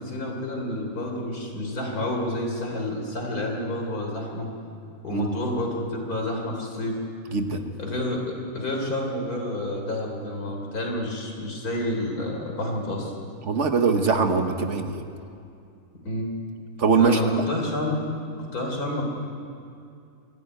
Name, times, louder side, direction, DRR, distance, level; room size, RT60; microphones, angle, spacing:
voice 1, 0.0-4.5 5.0-7.0 7.8-13.1 16.0-16.3 17.0-18.0 18.4-19.0, left 1 dB, 80° left, 1 dB, 3.9 m, -29 dB
voice 2, 7.3-7.6 13.5-15.0 16.8-17.2, right 5 dB, 55° right, 6 dB, 1.4 m, -22 dB
24.5 x 11.5 x 9.4 m, 2.4 s
omnidirectional pair, 1.6 m